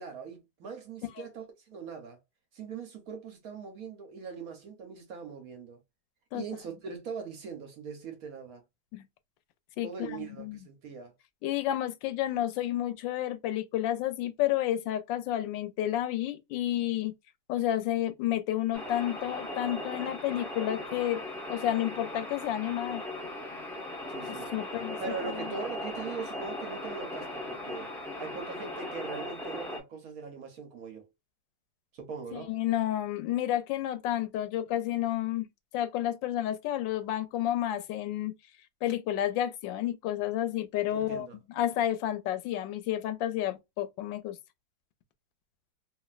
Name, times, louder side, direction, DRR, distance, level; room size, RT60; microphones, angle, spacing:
voice 1, 0.0-2.2 2.5-5.8 6.3-8.6 9.8-11.1 24.1-24.5 25.0-27.9 28.2-31.0 31.9-32.5 40.9-41.4, right 5 dB, 60° right, 1.0 m, -41 dB
voice 2, 9.8-10.6 11.4-17.1 17.5-21.2 21.5-23.0 24.2-25.0 25.4-25.5 32.3-35.5 35.7-38.3 38.8-41.3 41.6-44.4, left 12 dB, 85° left, 1.3 m, -30 dB
sound 1, 18.7-29.8, left 1 dB, 5° left, 0.3 m, -38 dB
3.1 x 2.5 x 2.4 m
omnidirectional pair, 2.0 m